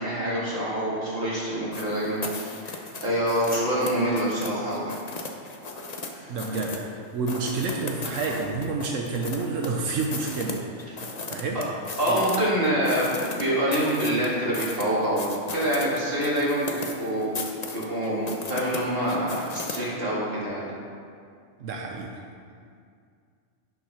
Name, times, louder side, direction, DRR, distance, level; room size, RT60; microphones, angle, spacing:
voice 1, 0.0-4.9 6.1-6.3 11.5-11.6 12.0-17.3 17.7-20.6, right 1 dB, 50° right, -7 dB, 2.7 m, -26 dB
sound 1, 1.7-6.1 6.4-6.9 7.3-9.7 10.0-12.4 12.6-19.8, left 3 dB, 35° left, 0.8 m, -36 dB
voice 2, 6.3-6.8 7.1-11.0 11.3-11.6 12.1-12.2 21.6-22.2, right 3 dB, 90° right, 0 dB, 1.2 m, -29 dB
10.5 x 5.9 x 5.6 m, 2.3 s
omnidirectional pair, 1.3 m